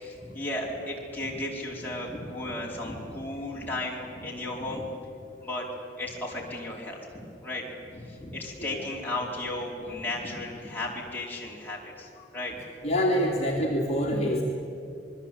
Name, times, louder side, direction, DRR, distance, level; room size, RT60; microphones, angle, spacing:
voice 1, 0.0-4.8 5.4-5.7 6.0-12.6 14.0-14.2, left 1 dB, 10° left, -4 dB, 4.8 m, -35 dB
voice 2, 12.8-14.4, equal, 40° left, -2 dB, 2.8 m, -26 dB
27.5 x 21.0 x 8.7 m, 2.6 s
head